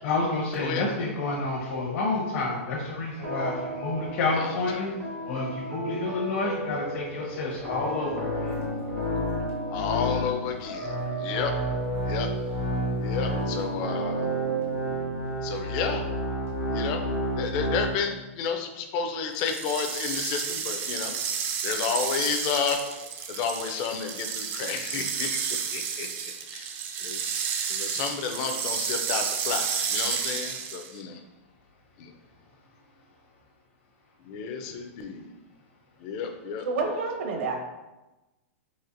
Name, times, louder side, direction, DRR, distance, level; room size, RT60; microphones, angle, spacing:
voice 1, 0.0-4.9 5.3-8.5, left 3 dB, 60° left, -4 dB, 0.8 m, -29 dB
sound 1, 3.2-15.6, right 3 dB, 75° right, 1.4 m, -35 dB
voice 2, 4.3-4.9 9.7-10.9 11.2-11.5 12.1-12.3 13.0-14.2 15.4-16.0 16.7-17.1 17.4-21.1 21.6-22.8 23.3-25.4 25.7-26.1 26.5-26.7 27.0-27.2 27.7-31.2 32.0-32.1 34.2-35.3 36.0-37.0, left 6 dB, 40° left, 5 dB, 0.4 m, -31 dB
sound 2, 7.5-17.9, left 1 dB, 85° left, 1.1 m, -31 dB
sound 3, 19.3-31.0, right 7 dB, 30° right, 0.3 m, -31 dB
voice 3, 36.6-37.6, right 4 dB, 60° right, 2 dB, 0.7 m, -28 dB
4.1 x 2.5 x 2.5 m, 1.1 s
hypercardioid pair, 145°, 7 cm